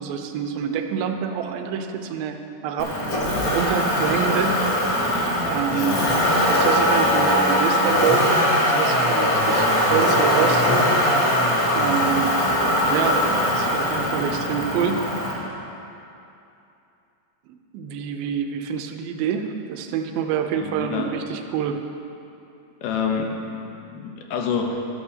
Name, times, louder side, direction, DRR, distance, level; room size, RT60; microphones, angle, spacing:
voice 1, 0.0-2.4 2.6-2.9 3.5-4.9 5.4-6.0 6.5-8.2 8.7-10.6 11.7-12.3 12.8-13.2 13.5-15.1 17.7-21.8, right 8 dB, 85° right, 6 dB, 2.5 m, -26 dB
Motor vehicle (road), 2.8-15.3, left 1 dB, 55° left, 0.9 m, -21 dB
voice 2, 5.7-6.2 20.5-21.1 22.8-24.8, left 6 dB, 75° left, 2 dB, 2.2 m, -28 dB
13.0 x 11.5 x 2.8 m, 2.8 s
omnidirectional pair, 4.2 m